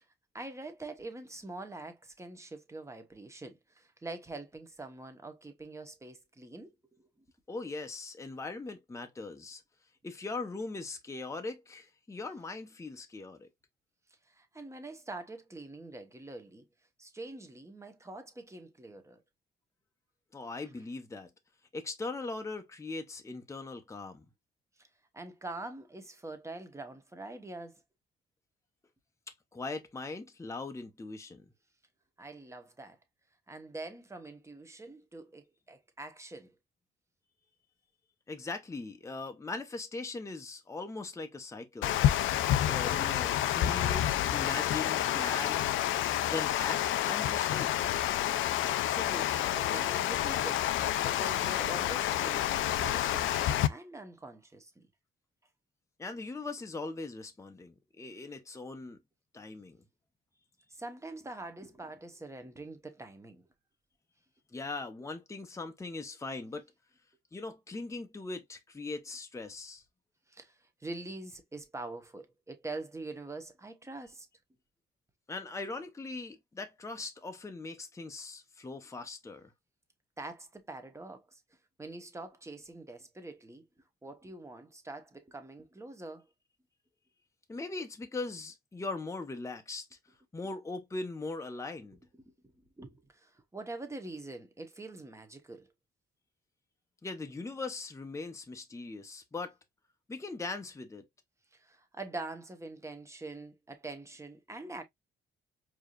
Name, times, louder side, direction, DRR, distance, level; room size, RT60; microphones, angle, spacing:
voice 1, 0.3-7.3 14.3-16.7 17.0-19.2 25.1-27.8 32.2-33.0 33.5-36.5 48.6-50.7 51.0-54.9 60.7-63.5 70.3-70.5 70.8-74.3 80.2-81.4 81.8-83.6 84.0-86.2 92.1-95.7 101.5-104.8, right 2 dB, 15° right, 1.1 m, -44 dB
voice 2, 7.5-9.6 10.0-13.5 20.3-21.3 21.7-24.2 29.5-31.4 38.3-42.0 42.6-45.8 46.3-47.9 56.0-59.0 59.3-59.8 64.5-66.7 67.3-69.8 75.3-79.5 87.5-89.9 90.3-92.0 97.0-99.5 100.1-101.0, left 3 dB, 15° left, 0.7 m, -40 dB
Water, 41.8-53.7, left 12 dB, 80° left, 0.5 m, -29 dB
4.7 x 2.9 x 2.4 m
cardioid pair, 90°, 20 cm